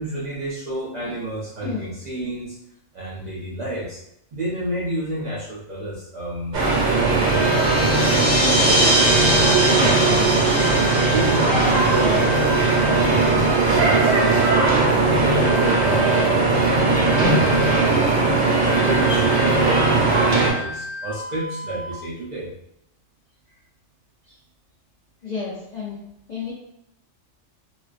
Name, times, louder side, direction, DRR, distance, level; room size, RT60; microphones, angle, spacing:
voice 1, 0.0-2.6 2.9-4.0 4.3-7.7 8.1-14.7 15.0-16.9 17.6-18.1 18.8-22.5 24.3-24.4, right 1 dB, 55° right, -7 dB, 0.5 m, -30 dB
sound 1, 6.5-20.5, right 3 dB, 75° right, 1.0 m, -18 dB
sound 2, 7.3-21.9, left 1 dB, 85° left, 1.0 m, -34 dB
sound 3, 7.3-13.5, equal, 20° left, 0.8 m, -24 dB
voice 2, 25.2-26.0 26.3-26.5, left 5 dB, 70° left, -5 dB, 0.4 m, -31 dB
2.4 x 2.2 x 2.4 m, 0.79 s
omnidirectional pair, 1.3 m